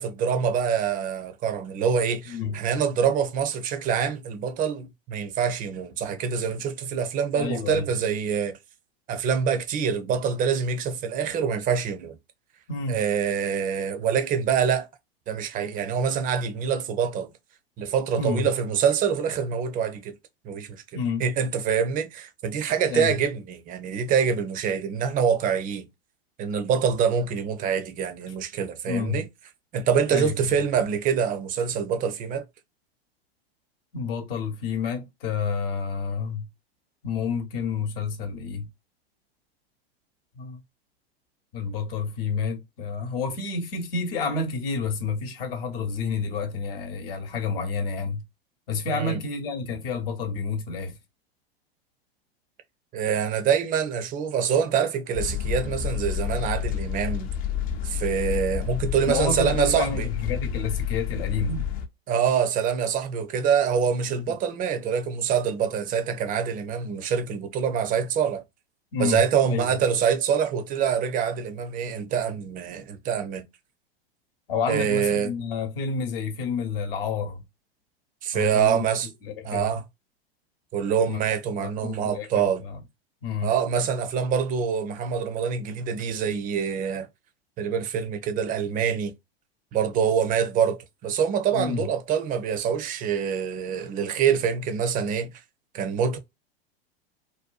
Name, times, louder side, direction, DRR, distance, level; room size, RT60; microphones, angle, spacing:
voice 1, 0.0-8.6 9.1-12.2 12.9-14.9 15.3-17.3 17.8-20.1 20.4-20.8 21.2-25.9 26.4-29.3 29.7-32.4 48.9-49.2 52.9-57.3 57.8-60.1 62.1-68.4 69.0-73.4 74.7-75.3 78.2-79.1 79.4-79.8 80.7-82.6 83.4-87.1 87.6-89.1 89.7-95.3 95.7-96.2, right 7 dB, 25° right, 0.5 m, -25 dB
voice 2, 2.3-2.6 7.3-7.9 12.7-13.0 18.2-18.5 20.9-21.2 22.9-23.2 28.9-29.2 30.1-30.6 33.9-36.5 37.0-38.7 40.3-40.6 41.5-48.2 48.7-51.0 59.1-61.7 64.1-64.2 68.9-69.7 74.5-77.4 78.3-78.8 79.2-79.7 81.1-81.2 81.6-82.8 83.2-83.5 91.5-91.9, left 5 dB, 65° left, 0.9 m, -29 dB
sound 1, 55.1-61.9, left 9 dB, 30° left, 0.4 m, -29 dB
2.7 x 2.2 x 2.3 m
hypercardioid pair, 95°, 31 cm